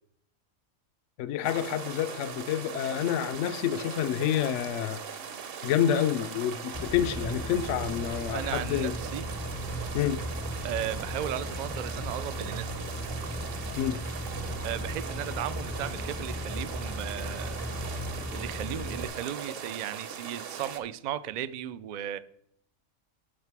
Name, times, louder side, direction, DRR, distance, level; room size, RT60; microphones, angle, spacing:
voice 1, 1.2-5.0 5.6-8.9 9.9-10.2 13.8-14.0, left 10 dB, 75° left, 0.9 m, -28 dB
sound 1, 1.4-20.8, right 7 dB, 55° right, 0.9 m, -40 dB
sound 2, 6.7-19.1, equal, 20° left, 0.4 m, -36 dB
voice 2, 8.3-9.3 10.6-12.9 14.6-17.6 18.3-22.2, right 11 dB, 70° right, 0.4 m, -36 dB
11.0 x 5.8 x 4.7 m
omnidirectional pair, 1.3 m